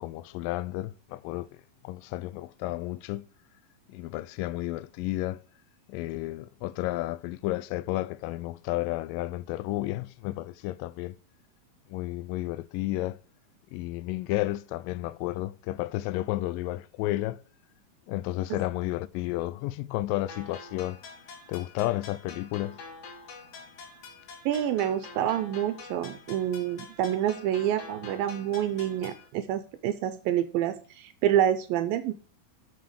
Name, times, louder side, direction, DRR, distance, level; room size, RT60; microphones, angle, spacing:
voice 1, 0.0-1.5 1.8-3.3 3.9-5.4 5.9-11.2 11.9-13.2 13.7-17.4 18.1-21.0 21.5-22.8, left 17 dB, 80° left, 2.1 m, -32 dB
sound 1, 20.3-29.3, left 4 dB, 60° left, 3.1 m, -46 dB
voice 2, 24.5-32.1, right 11 dB, 80° right, 2.4 m, -27 dB
7.0 x 6.4 x 6.5 m
omnidirectional pair, 4.3 m